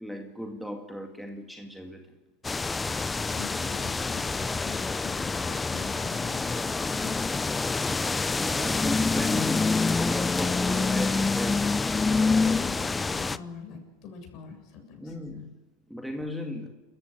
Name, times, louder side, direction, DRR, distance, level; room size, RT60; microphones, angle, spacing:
voice 1, 0.0-2.2 8.4-12.0 15.0-15.6 15.9-16.7, equal, ahead, 3 dB, 2.2 m, -36 dB
sound 1, 2.4-13.4, left 4 dB, 15° left, 0.7 m, -27 dB
voice 2, 3.3-7.4 12.4-15.2, left 6 dB, 50° left, 5 dB, 7.4 m, -44 dB
28.5 x 15.0 x 9.3 m, 1.2 s
hypercardioid pair, 100°, 0 cm